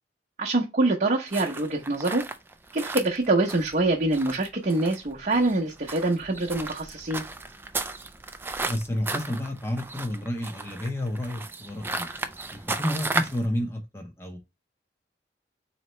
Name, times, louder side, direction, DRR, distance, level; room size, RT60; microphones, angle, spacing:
voice 1, 0.4-2.2 2.7-7.2, right 2 dB, 45° right, 0.8 m, -25 dB
sound 1, 1.3-13.5, right 3 dB, 15° right, 0.3 m, -35 dB
voice 2, 8.7-12.1 12.5-14.4, left 1 dB, 15° left, 0.9 m, -30 dB
4.2 x 2.9 x 3.1 m
head